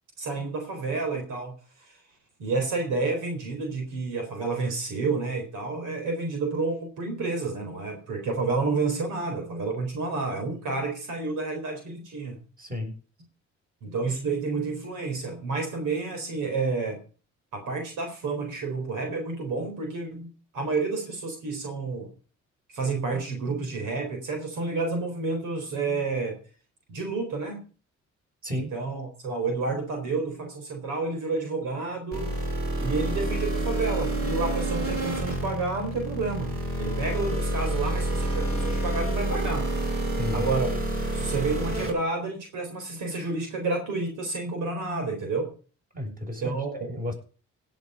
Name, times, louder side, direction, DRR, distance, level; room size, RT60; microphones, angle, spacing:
voice 1, 0.2-1.5 1.8-1.9 2.4-12.4 13.8-17.0 17.5-22.1 22.7-26.4 26.9-27.6 28.5-32.4 32.8-36.5 36.8-39.7 40.3-40.8 41.1-45.5 46.4-47.0, right 3 dB, 85° right, 3 dB, 4.1 m, -30 dB
voice 2, 12.6-12.9 28.4-28.7 40.2-40.5 45.9-47.1, left 1 dB, 30° right, 1 dB, 7.3 m, -33 dB
sound 1, 32.1-41.9, right 1 dB, 50° right, 5.7 m, -28 dB
17.0 x 7.4 x 5.5 m, 0.38 s
cardioid pair, 90°, 30 cm